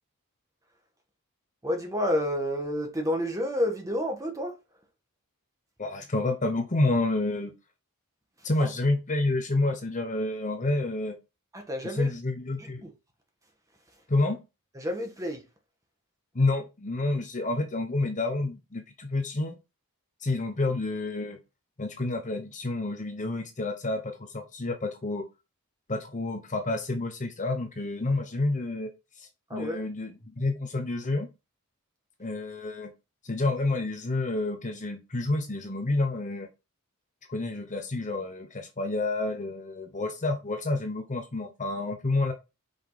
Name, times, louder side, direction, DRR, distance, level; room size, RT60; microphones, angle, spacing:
voice 1, 1.6-4.6 8.6-8.7 11.5-12.1 12.6-12.9 14.8-15.4 29.5-29.9, equal, 15° right, 1.7 m, -30 dB
voice 2, 5.8-7.5 8.4-11.2 11.8-12.8 14.1-14.4 16.3-19.6 20.2-21.4 21.8-25.3 25.9-28.9 29.2-31.3 32.2-32.9 33.2-36.5 37.3-42.3, left 2 dB, 35° left, 1.1 m, -29 dB
5.7 x 5.5 x 4.1 m
head